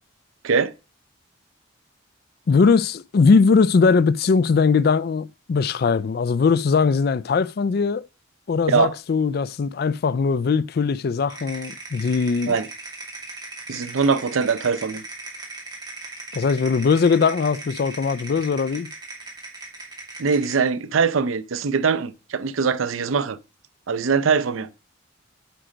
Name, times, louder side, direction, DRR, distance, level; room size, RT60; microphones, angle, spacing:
voice 1, 2.5-8.0 8.5-12.5 16.3-18.9, left 5 dB, 50° left, 0.3 m, -20 dB
sound 1, 11.3-20.7, right 3 dB, 20° right, 2.3 m, -38 dB
voice 2, 13.7-15.0 20.2-23.4 23.9-24.7, right 5 dB, 85° right, 0.5 m, -22 dB
9.1 x 5.1 x 5.1 m
head